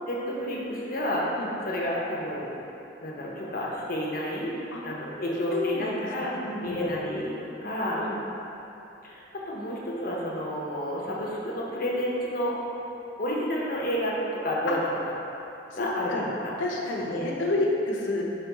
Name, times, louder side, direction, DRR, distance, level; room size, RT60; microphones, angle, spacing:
voice 1, 0.1-1.3 1.6-2.5 3.0-4.5 4.8-6.3 6.6-7.3 7.6-8.0 9.0-12.5 13.2-14.1 14.4-14.9 15.7-16.4 17.0-17.3, equal, 50° left, -4 dB, 0.6 m, -30 dB
voice 2, 5.5-6.8 8.0-8.2 14.7-14.8 15.7-16.3 16.6-18.2, left 2 dB, 90° left, -2 dB, 0.6 m, -30 dB
4.7 x 3.0 x 3.4 m, 2.9 s
head